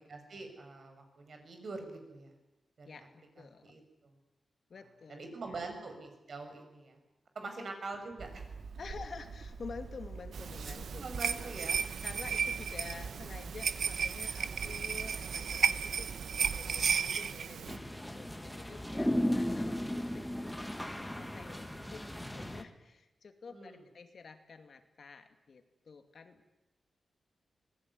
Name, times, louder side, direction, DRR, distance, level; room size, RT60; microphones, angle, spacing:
voice 1, 0.1-2.3 2.8-3.0 3.6-4.1 5.1-7.0 7.3-8.5 10.9-11.8 23.5-23.8, right 3 dB, 50° right, 6 dB, 6.1 m, -44 dB
voice 2, 2.8-3.7 4.7-5.7 7.4-7.7 8.8-11.5 12.0-26.5, left 5 dB, 50° left, 7 dB, 2.4 m, -50 dB
Hammer, 8.2-17.1, right 4 dB, 85° right, 2.3 m, -46 dB
sound 1, 10.3-17.8, right 7 dB, 70° right, 1.1 m, -34 dB
sound 2, 17.7-22.6, left 1 dB, 5° left, 1.7 m, -35 dB
26.5 x 20.5 x 9.7 m, 1.0 s
wide cardioid pair, 170°, 0 cm